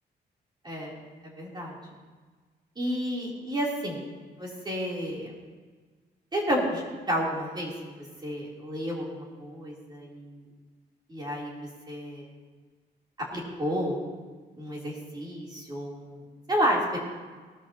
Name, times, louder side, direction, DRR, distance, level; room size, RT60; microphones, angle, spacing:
voice 1, 0.6-1.0 1.2-1.8 2.8-4.0 4.4-5.3 6.3-7.7 8.0-10.5 11.1-11.5 11.9-12.3 13.2-14.0 14.6-17.0, equal, 25° right, -4 dB, 3.5 m, -31 dB
19.0 x 13.0 x 3.0 m, 1.4 s
cardioid pair, 145°, 18 cm